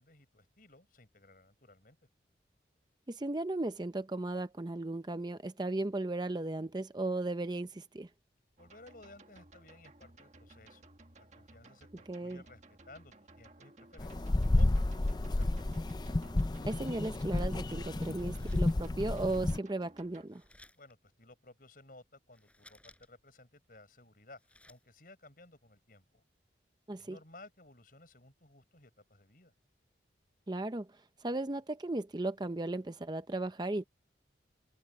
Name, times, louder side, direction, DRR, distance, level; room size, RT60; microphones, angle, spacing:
voice 1, 0.0-2.0 8.6-15.5 20.7-26.2 26.9-29.5, left 2 dB, 50° left, 6.8 m, -57 dB
voice 2, 3.1-8.1 12.1-12.4 16.6-20.4 26.9-27.2 30.5-30.9 31.2-33.8, right 2 dB, 25° right, 0.6 m, -36 dB
sound 1, 8.6-20.3, right 2 dB, 40° right, 1.6 m, -58 dB
sound 2, 14.0-19.6, left 2 dB, 25° left, 0.4 m, -31 dB
sound 3, 18.1-19.2 20.3-20.9 22.3-23.3 23.6-23.7 24.1-24.9, left 1 dB, 5° left, 5.8 m, -62 dB
head